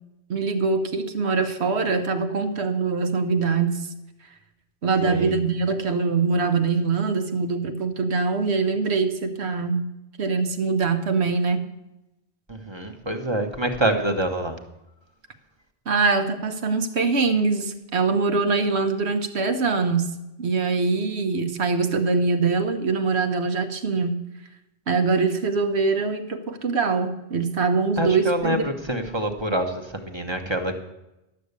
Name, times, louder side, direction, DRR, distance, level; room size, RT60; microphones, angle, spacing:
voice 1, 0.3-3.9 4.8-9.8 10.2-11.6 15.9-20.1 20.4-24.2 24.9-28.6, right 4 dB, 75° right, 8 dB, 1.3 m, -23 dB
voice 2, 5.0-5.3 12.5-14.6 28.0-30.8, right 1 dB, 25° right, 4 dB, 1.1 m, -26 dB
11.5 x 6.8 x 8.1 m, 0.93 s
omnidirectional pair, 1.1 m